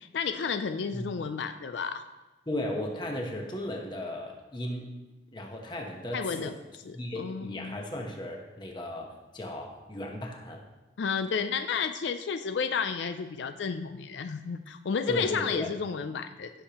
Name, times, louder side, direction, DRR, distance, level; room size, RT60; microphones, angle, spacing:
voice 1, 0.0-2.0 6.1-6.5 6.8-7.8 11.0-16.5, left 6 dB, 80° left, 9 dB, 0.4 m, -32 dB
voice 2, 2.5-4.9 5.3-6.5 6.9-10.6 15.1-15.7, left 1 dB, 25° left, 2 dB, 1.1 m, -36 dB
15.5 x 6.6 x 2.9 m, 1.1 s
head